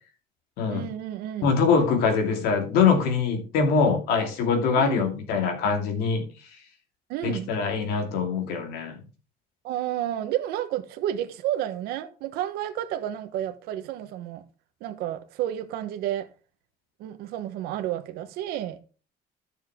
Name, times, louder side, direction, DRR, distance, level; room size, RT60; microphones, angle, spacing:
voice 1, 0.7-1.5 4.8-5.1 7.1-7.5 9.6-14.4 14.8-16.3 17.0-18.8, right 12 dB, 85° right, 1.2 m, -31 dB
voice 2, 1.4-6.2 7.2-9.0, left 5 dB, 85° left, 2.5 m, -23 dB
12.5 x 6.5 x 3.6 m
cardioid pair, 160°, 16 cm